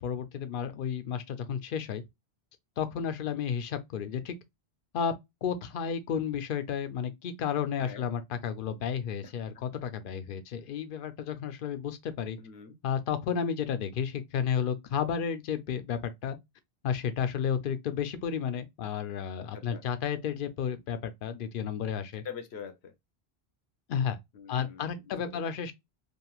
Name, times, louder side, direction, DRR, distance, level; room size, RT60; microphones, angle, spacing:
voice 1, 0.0-2.0 2.8-4.3 4.9-5.1 5.4-12.4 12.8-16.4 16.8-22.2 23.9-24.2 24.5-25.7, left 7 dB, 60° left, 0.7 m, -32 dB
voice 2, 12.4-12.8 19.5-19.8 22.2-22.9 24.3-25.4, left 7 dB, 85° left, 0.9 m, -44 dB
3.0 x 2.5 x 2.2 m
omnidirectional pair, 1.1 m